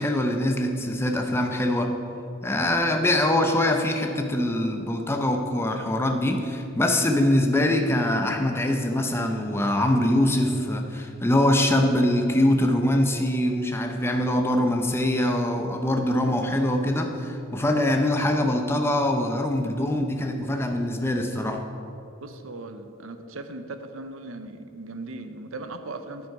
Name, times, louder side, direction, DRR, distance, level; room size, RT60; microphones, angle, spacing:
voice 1, 0.0-2.0 2.4-21.7, left 1 dB, 10° left, 4 dB, 0.6 m, -23 dB
voice 2, 22.4-23.1 23.5-23.6 23.9-26.2, right 2 dB, 80° right, 8 dB, 0.8 m, -38 dB
9.3 x 9.3 x 4.8 m, 3.0 s
head